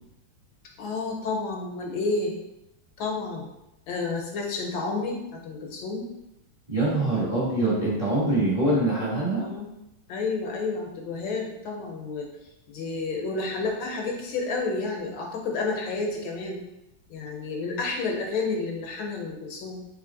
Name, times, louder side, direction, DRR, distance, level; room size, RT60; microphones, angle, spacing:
voice 1, 0.8-2.3 3.0-3.5 3.9-6.1 9.3-9.7 10.1-12.3 12.7-16.6 17.1-19.8, left 3 dB, 75° left, 1 dB, 1.5 m, -30 dB
voice 2, 6.7-9.4, right 2 dB, 20° right, -8 dB, 1.2 m, -24 dB
3.6 x 3.1 x 3.7 m, 0.90 s
omnidirectional pair, 2.2 m